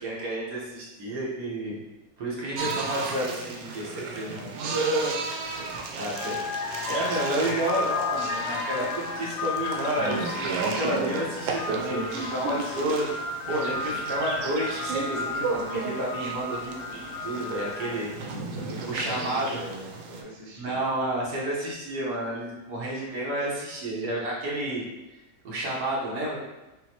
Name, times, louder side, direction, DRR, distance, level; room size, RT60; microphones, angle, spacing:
voice 1, 0.0-1.8 2.2-4.4 6.0-13.1 13.5-18.1 18.9-19.5 20.6-24.8 25.4-26.4, right 1 dB, 65° right, -5 dB, 1.5 m, -30 dB
sound 1, 2.6-20.2, right 3 dB, 85° right, 1.3 m, -33 dB
voice 2, 4.1-5.2 5.5-5.7 6.1-6.3 13.5-13.6 13.8-13.9 17.1-17.2 17.8-18.1 18.5-20.8, right 1 dB, 30° right, -7 dB, 0.5 m, -43 dB
sound 2, 5.5-5.7 6.1-18.2, left 4 dB, 85° left, 1.4 m, -34 dB
6.0 x 2.1 x 2.8 m, 1.0 s
omnidirectional pair, 2.0 m